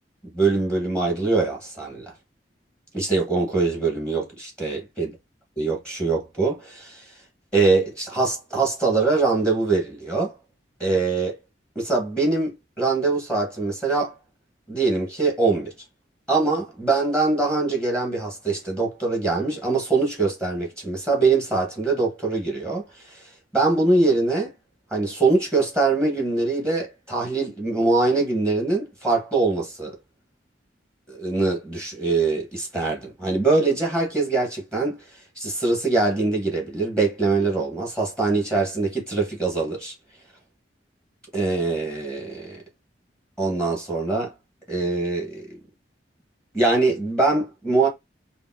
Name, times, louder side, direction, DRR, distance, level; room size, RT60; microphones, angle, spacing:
voice 1, 0.3-2.1 2.9-5.1 5.6-7.1 7.5-10.3 10.8-11.4 11.7-14.2 14.7-15.7 16.3-23.2 23.5-24.5 24.9-29.9 31.1-35.0 35.3-39.9 41.3-42.6 43.4-44.3 44.7-45.5 46.5-47.9, right 3 dB, 5° left, 1.7 m, -23 dB
5.1 x 2.2 x 4.0 m
head